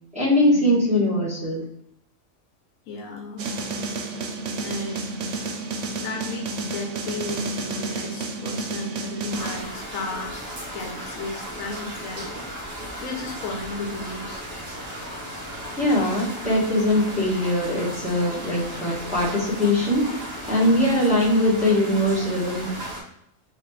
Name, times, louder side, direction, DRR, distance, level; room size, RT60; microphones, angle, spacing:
voice 1, 0.1-1.6 15.8-22.7, left 1 dB, 5° right, -8 dB, 1.3 m, -21 dB
voice 2, 2.9-3.5 4.6-5.7 6.0-14.5 20.7-21.0, left 2 dB, 85° left, 2 dB, 1.2 m, -35 dB
sound 1, 3.4-9.6, right 3 dB, 70° right, 0.9 m, -31 dB
sound 2, 9.3-23.0, equal, 40° right, 1.2 m, -35 dB
4.0 x 2.8 x 3.1 m, 0.71 s
omnidirectional pair, 1.4 m